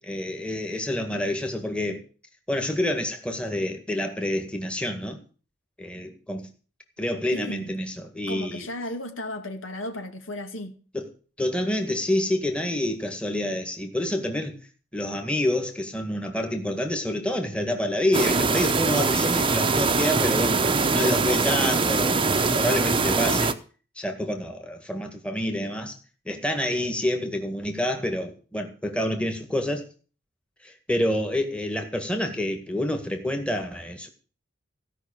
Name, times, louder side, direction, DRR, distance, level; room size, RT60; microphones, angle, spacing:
voice 1, 0.0-2.0 2.5-5.2 5.8-6.5 7.0-8.7 10.9-11.0 11.4-14.6 14.9-22.3 22.6-23.5 24.0-25.9 26.3-29.9 30.6-34.1, left 1 dB, 5° left, 1.9 m, -28 dB
voice 2, 7.3-7.7 8.3-10.7, left 1 dB, 75° left, 2.3 m, -34 dB
sound 1, 18.1-23.5, right 4 dB, 25° right, 0.9 m, -22 dB
16.5 x 5.9 x 8.7 m
head